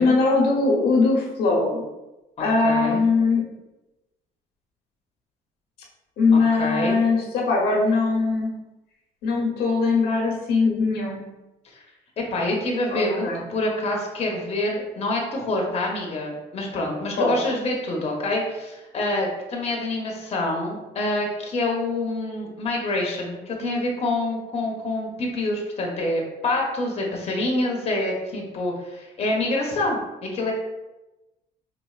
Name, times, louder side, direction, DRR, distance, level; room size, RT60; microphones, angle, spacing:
voice 1, 0.0-1.8 2.4-3.4 6.2-8.5 9.2-11.2 12.9-13.4 17.2-17.3, left 3 dB, 75° left, -2 dB, 0.9 m, -21 dB
voice 2, 2.4-3.0 6.3-7.0 11.7-11.8 12.3-30.5, left 2 dB, 40° left, -1 dB, 0.8 m, -26 dB
4.2 x 2.5 x 2.3 m, 1.0 s
cardioid pair, 110°, 17 cm